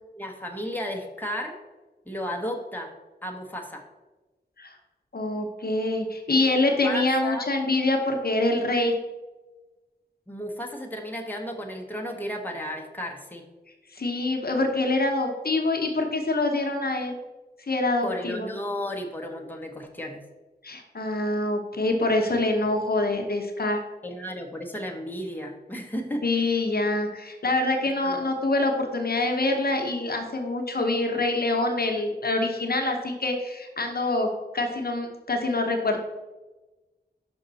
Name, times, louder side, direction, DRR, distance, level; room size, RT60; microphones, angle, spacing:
voice 1, 0.1-1.5 2.1-2.9 3.2-3.8 6.3-6.4 6.8-7.4 10.3-13.4 18.0-20.2 24.0-26.2 28.0-28.3, equal, 10° left, 1 dB, 0.9 m, -34 dB
voice 2, 5.1-8.9 13.9-17.1 17.7-18.5 20.6-23.8 26.2-36.0, left 2 dB, 60° left, 3 dB, 0.8 m, -25 dB
5.4 x 5.3 x 4.0 m, 1.2 s
wide cardioid pair, 60°, 18 cm